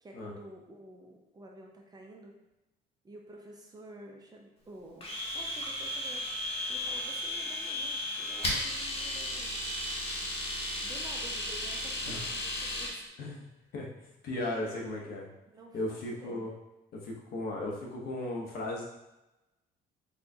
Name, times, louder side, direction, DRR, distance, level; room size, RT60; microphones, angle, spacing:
voice 1, 0.0-2.4 3.0-6.3 6.7-9.5 10.8-13.3 14.6-15.2 15.5-16.5, right 2 dB, 25° right, 0 dB, 0.6 m, -50 dB
Domestic sounds home sounds, 5.0-13.0, left 1 dB, 35° left, 1.0 m, -35 dB
voice 2, 14.2-15.3 15.7-16.5 16.9-18.8, left 1 dB, 65° left, -1 dB, 0.9 m, -36 dB
4.2 x 2.3 x 2.7 m, 0.96 s
cardioid pair, 110°, 17 cm